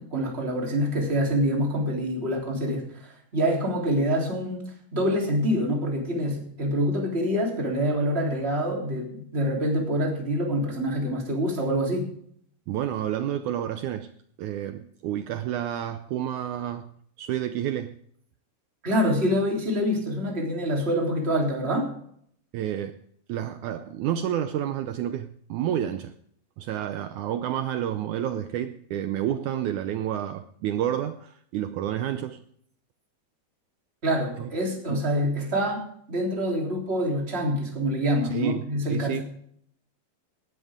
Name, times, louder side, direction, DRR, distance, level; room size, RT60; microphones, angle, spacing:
voice 1, 0.0-4.6 4.9-12.1 18.8-21.9 34.0-39.2, equal, 15° right, 3.4 m, -26 dB
voice 2, 12.7-14.1 14.4-16.9 17.2-18.0 22.5-23.0 23.3-26.1 26.6-32.4 34.4-34.5 34.9-35.0 38.3-38.6 38.9-39.2, right 11 dB, 85° right, 1.7 m, -29 dB
18.5 x 13.0 x 3.7 m
omnidirectional pair, 4.3 m